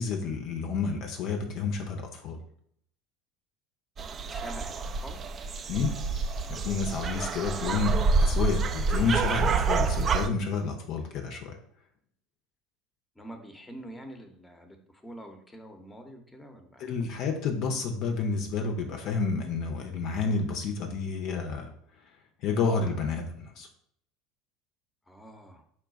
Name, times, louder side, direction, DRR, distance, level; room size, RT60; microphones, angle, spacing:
voice 1, 0.0-2.4 5.7-5.9 6.5-7.9 8.2-11.6 16.8-21.7 22.4-23.7, left 5 dB, 55° left, 4 dB, 0.6 m, -30 dB
sound 1, 4.0-10.3, right 4 dB, 35° right, 0.4 m, -27 dB
voice 2, 4.3-5.2 13.2-17.1 25.1-25.6, right 1 dB, 10° left, 5 dB, 0.8 m, -46 dB
4.4 x 2.3 x 3.9 m, 0.67 s
figure-of-eight pair, 70°, 0 cm